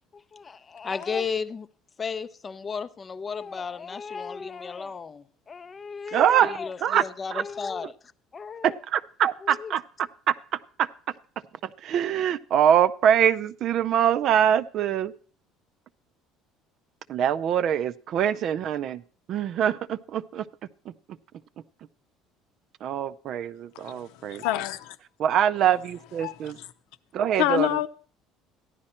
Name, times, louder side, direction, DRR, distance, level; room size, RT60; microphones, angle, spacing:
voice 1, 0.1-1.7 2.0-7.9 8.3-8.8 9.4-9.7, left 5 dB, 20° left, 0.5 m, -34 dB
voice 2, 6.1-7.0 7.3-7.4 8.6-9.8 10.3-10.9 11.6-15.1 17.1-19.0 19.3-20.4 20.9-21.0 22.8-24.4 25.2-26.6 27.1-27.8, right 9 dB, 40° right, 0.5 m, -24 dB
voice 3, 23.7-25.0 26.2-26.7 27.4-27.9, left 13 dB, 80° left, 0.8 m, -27 dB
14.0 x 11.0 x 4.3 m
cardioid pair, 170°, 0 cm